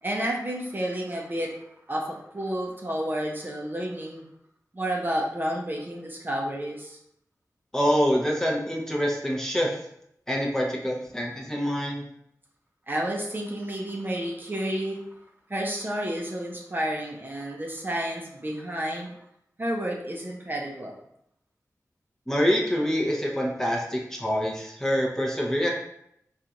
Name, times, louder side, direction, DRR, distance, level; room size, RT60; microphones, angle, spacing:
voice 1, 0.0-1.5 1.9-4.2 4.7-7.0 10.6-11.0 12.9-15.0 15.5-19.1 19.6-20.9, right 1 dB, 30° right, -1 dB, 0.6 m, -31 dB
voice 2, 7.7-9.7 10.3-12.0 22.3-25.7, equal, 10° left, -2 dB, 0.7 m, -25 dB
3.8 x 2.4 x 2.8 m, 0.75 s
wide cardioid pair, 60°, 6 cm